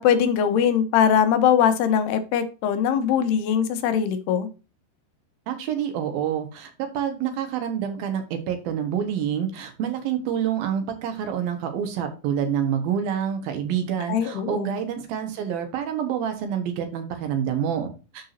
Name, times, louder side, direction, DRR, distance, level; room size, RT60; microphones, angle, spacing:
voice 1, 0.0-4.5 14.1-14.8, left 8 dB, 85° left, 3.0 m, -21 dB
voice 2, 5.5-18.3, right 8 dB, 70° right, 3.0 m, -27 dB
12.0 x 4.9 x 2.7 m
omnidirectional pair, 4.6 m